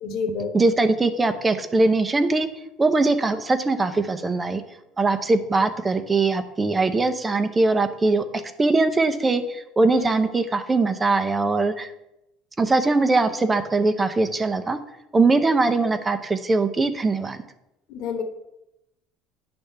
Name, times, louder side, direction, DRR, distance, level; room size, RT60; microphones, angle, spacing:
voice 1, 0.0-0.5 9.9-10.1 17.9-18.2, left 5 dB, 60° left, 5 dB, 1.4 m, -28 dB
voice 2, 0.5-2.5 2.8-4.6 5.0-8.2 8.6-11.9 12.6-14.8 15.1-17.4, right 3 dB, 15° right, 9 dB, 0.7 m, -21 dB
10.0 x 3.5 x 6.7 m, 0.87 s
cardioid pair, 140°, 0 cm